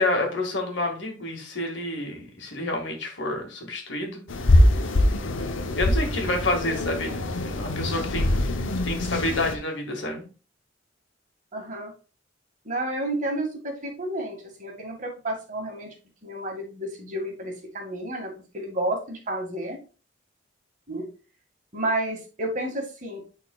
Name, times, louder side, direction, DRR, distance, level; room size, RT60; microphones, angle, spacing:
voice 1, 0.0-4.2 4.5-4.6 5.8-10.3, left 2 dB, 70° left, 2 dB, 1.8 m, -29 dB
sound 1, 4.3-9.5, left 1 dB, 90° left, 0.8 m, -23 dB
voice 2, 11.5-11.9 12.7-15.9 16.2-19.8 20.9-21.1 21.7-23.2, right 1 dB, 40° right, 1 dB, 2.0 m, -31 dB
10.5 x 4.1 x 2.3 m, 0.35 s
head